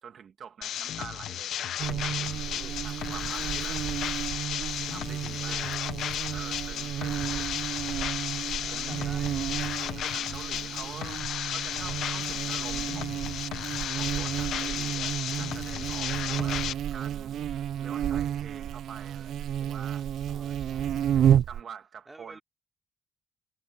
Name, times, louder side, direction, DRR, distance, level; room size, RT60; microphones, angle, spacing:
voice 1, 0.0-1.5 1.9-2.5 2.8-3.8 4.8-5.7 6.3-7.4 8.7-9.2 10.0-11.2 11.5-13.3 13.9-20.1 21.5-22.4, right 7 dB, 55° right, 2.7 m, -46 dB
sound 1, 0.6-16.7, left 11 dB, 75° left, 1.1 m, -34 dB
Buzz, 1.8-21.6, right 10 dB, 75° right, 0.9 m, -31 dB
voice 2, 5.5-5.9 8.6-9.5 10.6-11.1 20.3-21.3 22.1-22.4, right 2 dB, 15° right, 3.5 m, -50 dB
cardioid pair, 90°, 0 cm